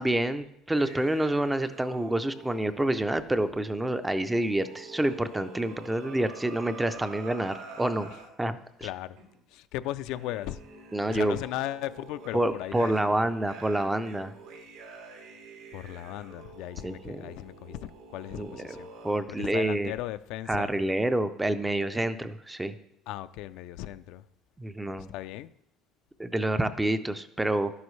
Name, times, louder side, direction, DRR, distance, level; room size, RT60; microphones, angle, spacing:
voice 1, 0.0-8.1 8.4-8.9 10.9-11.4 12.3-14.3 16.8-17.2 18.3-18.7 19.0-19.9 20.5-22.7 24.6-25.1 26.2-27.7, right 1 dB, 5° right, 0.4 m, -28 dB
sound 1, 0.7-8.3 9.2-9.4 10.1-19.2, right 3 dB, 90° right, 2.6 m, -47 dB
voice 2, 8.8-9.2 9.5-10.6 11.1-13.2 15.7-18.9 19.3-20.7 23.1-24.2 25.1-25.5, left 14 dB, 65° left, 0.3 m, -37 dB
11.5 x 9.5 x 3.2 m
cardioid pair, 165°, 0 cm